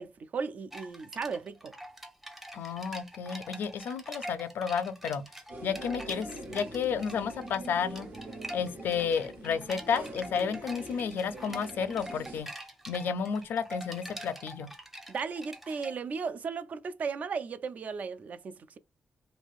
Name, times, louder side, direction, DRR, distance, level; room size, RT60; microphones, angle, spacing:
voice 1, 0.0-1.7 15.1-18.8, right 5 dB, 45° right, 0.3 m, -36 dB
sound 1, 0.7-15.9, equal, 5° right, 0.6 m, -45 dB
voice 2, 2.5-5.2 5.6-8.1 8.5-12.5 12.9-14.7, left 6 dB, 70° left, 0.5 m, -32 dB
sound 2, 5.5-12.4, right 2 dB, 60° right, 1.1 m, -44 dB
3.2 x 2.6 x 2.4 m
wide cardioid pair, 155°, 4 cm